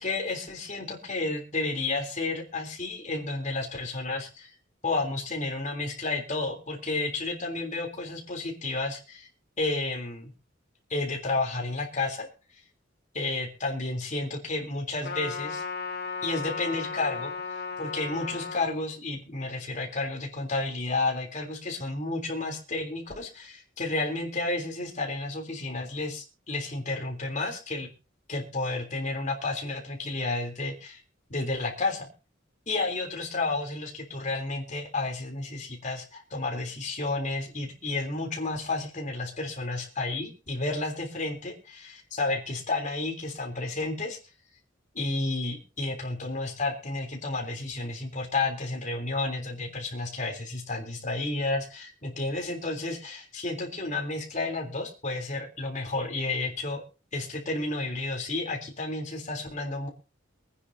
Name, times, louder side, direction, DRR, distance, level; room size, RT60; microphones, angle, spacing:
voice 1, 0.0-4.5 4.8-9.3 9.6-10.3 10.9-12.3 13.1-15.6 16.2-17.3 17.8-27.9 28.3-31.0 31.3-32.1 32.7-44.2 44.9-56.8 57.1-59.9, left 2 dB, 40° left, 1 dB, 3.4 m, -31 dB
Trumpet, 15.0-18.7, left 5 dB, 60° left, 2.8 m, -35 dB
24.0 x 9.7 x 2.8 m, 0.32 s
head